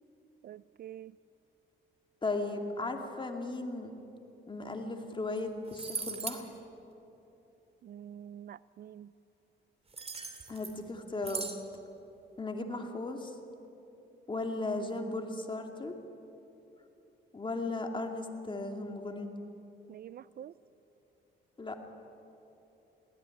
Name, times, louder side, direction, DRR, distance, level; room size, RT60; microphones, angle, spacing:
voice 1, 0.4-1.2 7.8-9.1 19.9-20.5, right 10 dB, 50° right, 19 dB, 0.4 m, -47 dB
voice 2, 2.2-3.9 4.5-6.5 10.5-11.5 12.4-13.4 14.3-15.9 17.3-19.3 21.6-21.8, left 2 dB, 25° left, 4 dB, 2.4 m, -36 dB
sound 1, 5.4-5.5 5.7-6.4 9.9-10.8 11.2-11.6, right 5 dB, 30° right, 2.6 m, -39 dB
22.0 x 17.0 x 9.8 m, 3.0 s
cardioid pair, 90°, 20 cm